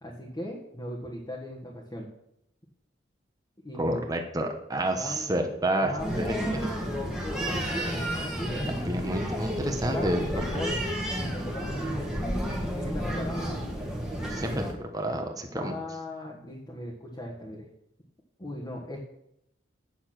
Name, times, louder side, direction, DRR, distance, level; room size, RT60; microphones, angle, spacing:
voice 1, 0.0-2.1 3.6-4.0 4.9-5.2 5.8-6.5 6.9-8.7 9.8-10.7 11.1-12.4 12.6-13.5 15.5-17.7 18.4-19.0, left 1 dB, 20° left, -4 dB, 1.5 m, -38 dB
voice 2, 3.8-6.3 8.8-10.2 10.5-10.6 14.3-14.6 14.9-15.7, right 1 dB, 20° right, 3 dB, 1.1 m, -29 dB
sound 1, 6.0-14.7, equal, 5° right, 1.7 m, -31 dB
8.7 x 7.1 x 6.0 m, 0.78 s
head